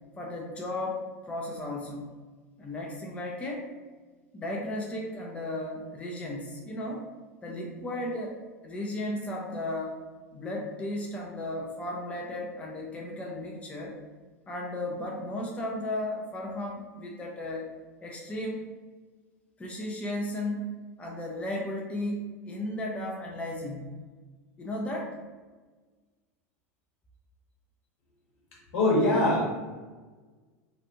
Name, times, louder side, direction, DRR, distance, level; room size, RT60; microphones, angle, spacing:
voice 1, 0.2-2.1 2.6-3.7 4.3-7.0 7.4-8.4 8.6-10.0 10.3-14.0 14.5-17.7 18.0-18.7 19.6-20.7 21.0-24.0 24.6-25.2, left 1 dB, 15° left, -2 dB, 0.5 m, -35 dB
voice 2, 28.7-29.5, left 1 dB, 65° left, -4 dB, 1.1 m, -22 dB
3.0 x 2.4 x 2.6 m, 1.4 s
hypercardioid pair, 90°, 8 cm